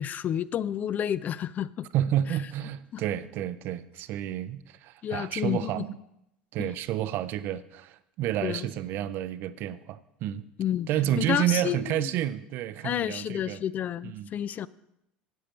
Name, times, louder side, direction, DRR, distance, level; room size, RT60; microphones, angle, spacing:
voice 1, 0.0-1.9 2.9-3.0 5.0-5.8 6.6-6.7 8.4-8.7 10.6-10.9 11.2-12.1 12.8-14.7, left 10 dB, 35° left, 0.3 m, -30 dB
voice 2, 1.9-6.0 6.5-10.4 10.9-13.6 14.0-14.3, right 12 dB, 50° right, 0.5 m, -30 dB
9.3 x 8.7 x 5.2 m
figure-of-eight pair, 70°, 5 cm